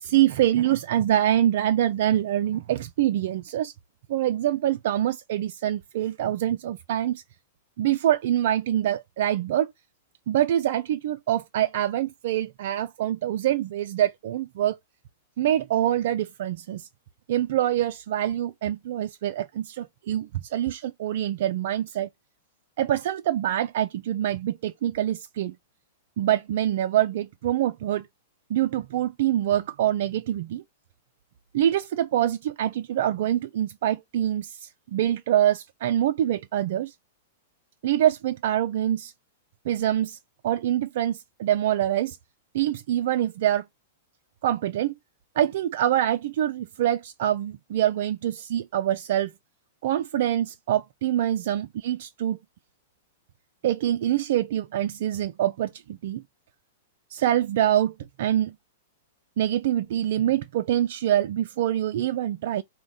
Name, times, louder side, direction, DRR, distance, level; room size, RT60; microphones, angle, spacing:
voice 1, 0.0-3.7 4.1-7.2 7.8-9.7 10.3-14.8 15.4-16.9 17.3-22.1 22.8-25.5 26.2-28.1 28.5-30.6 31.5-36.9 37.8-39.1 39.7-40.2 40.4-42.2 42.5-43.6 44.4-44.9 45.4-49.3 49.8-52.4 53.6-56.2 57.1-58.5 59.4-62.6, right 12 dB, 60° right, 0.3 m, -25 dB
3.5 x 2.2 x 3.9 m
hypercardioid pair, 110°, 0 cm